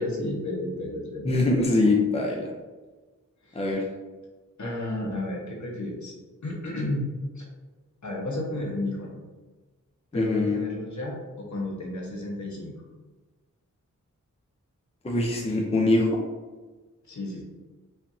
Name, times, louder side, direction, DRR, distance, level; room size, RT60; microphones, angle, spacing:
voice 1, 0.0-1.4 3.4-3.7 4.6-6.1 6.4-7.1 7.3-7.5 8.0-9.2 10.1-12.7 17.1-17.4, left 1 dB, 65° left, -2 dB, 1.2 m, -32 dB
voice 2, 1.2-2.5 3.5-3.8 10.1-10.6 15.0-16.1, left 2 dB, 20° left, -1 dB, 0.6 m, -23 dB
5.6 x 3.3 x 2.7 m, 1.3 s
wide cardioid pair, 90°, 32 cm